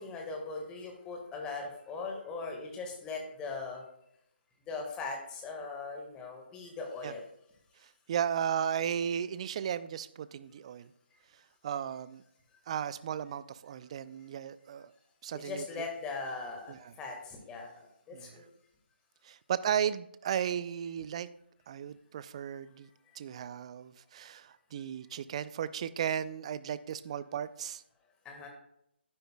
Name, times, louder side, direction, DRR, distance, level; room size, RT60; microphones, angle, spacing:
voice 1, 0.0-3.8 4.7-7.2 15.3-18.5 22.5-22.6 28.2-28.5, left 4 dB, 15° left, 2 dB, 1.5 m, -40 dB
voice 2, 8.1-10.9 11.6-12.2 12.7-14.9 15.2-15.6 16.7-16.9 18.1-18.4 19.2-21.3 21.7-22.9 23.2-27.8, right 9 dB, 35° right, 16 dB, 0.4 m, -35 dB
11.5 x 9.7 x 2.2 m, 0.76 s
figure-of-eight pair, 145°, 6 cm